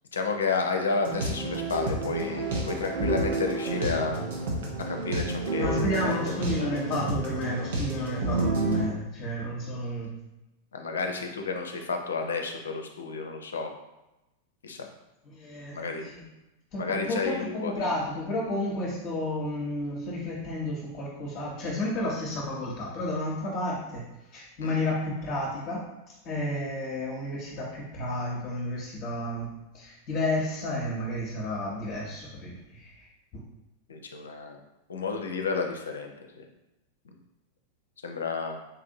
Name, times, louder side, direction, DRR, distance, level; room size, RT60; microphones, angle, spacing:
voice 1, 0.1-4.2 4.9-6.2 6.6-6.7 10.7-13.7 14.6-14.9 15.7-16.1 16.8-17.9 24.6-24.7 33.9-34.6 34.9-36.5 38.0-38.6, left 4 dB, 70° left, 4 dB, 0.4 m, -31 dB
sound 1, 1.0-8.9, right 2 dB, 55° right, 0.7 m, -30 dB
voice 2, 5.6-10.1 15.2-16.2 16.7-24.0 24.3-33.4, left 1 dB, 35° left, -6 dB, 0.8 m, -32 dB
4.0 x 2.6 x 2.7 m, 0.97 s
figure-of-eight pair, 90°, 0 cm